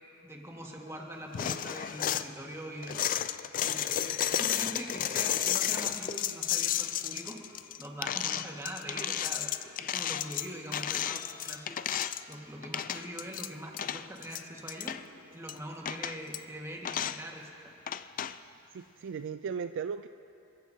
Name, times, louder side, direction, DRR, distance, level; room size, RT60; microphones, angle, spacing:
voice 1, 0.2-3.2 3.6-9.5 9.9-11.8 12.3-15.0 15.3-17.7, right 1 dB, 15° right, -1 dB, 1.7 m, -43 dB
sound 1, 1.3-2.3 2.8-12.3 12.6-13.5 13.7-15.0 15.5-15.6 15.9-16.4 16.8-17.2 17.9-18.4, left 10 dB, 40° left, 0.3 m, -32 dB
voice 2, 18.7-20.1, right 6 dB, 60° right, 10 dB, 0.3 m, -36 dB
27.0 x 14.5 x 2.8 m, 2.7 s
head